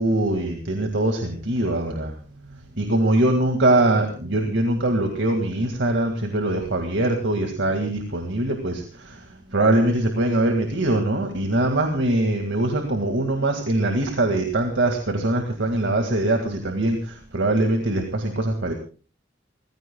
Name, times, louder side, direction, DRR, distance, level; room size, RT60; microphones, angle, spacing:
voice 1, 0.0-2.1 2.5-18.7, right 1 dB, 85° right, 4 dB, 2.1 m, -22 dB
29.0 x 15.5 x 2.3 m, 0.37 s
head